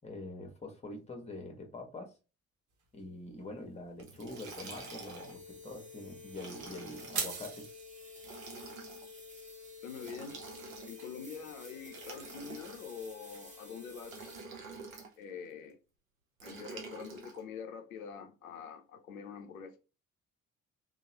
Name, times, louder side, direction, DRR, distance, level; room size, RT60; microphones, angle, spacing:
voice 1, 0.0-2.1 2.9-7.7, left 2 dB, 15° left, 1.0 m, -45 dB
sound 1, 2.7-13.4, right 6 dB, 50° right, 0.9 m, -47 dB
Liquid, 4.0-5.4 6.3-7.3 8.2-9.1 10.0-11.1 11.9-13.1 14.0-15.1 16.4-17.4, right 4 dB, 85° right, 0.6 m, -48 dB
sound 2, 4.5-14.4, left 3 dB, 20° right, 1.2 m, -51 dB
voice 2, 9.8-10.4 10.8-14.3 15.2-15.8 16.4-19.8, left 6 dB, 85° left, 0.5 m, -45 dB
2.9 x 2.1 x 2.8 m
figure-of-eight pair, 45°, 40 cm